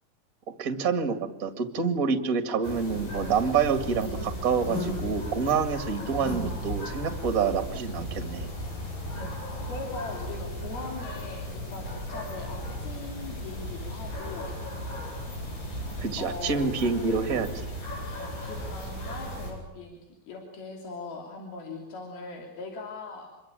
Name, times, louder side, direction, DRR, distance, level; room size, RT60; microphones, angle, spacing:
voice 1, 0.6-8.5 16.0-17.7, right 5 dB, 30° right, 9 dB, 2.0 m, -27 dB
sound 1, 2.6-19.5, equal, 70° left, 9.9 m, -35 dB
voice 2, 9.7-14.6 16.1-16.7 16.9-17.2 18.2-20.0 20.3-23.3, left 3 dB, 85° left, 2 dB, 4.9 m, -40 dB
26.5 x 23.0 x 8.9 m, 0.93 s
omnidirectional pair, 4.2 m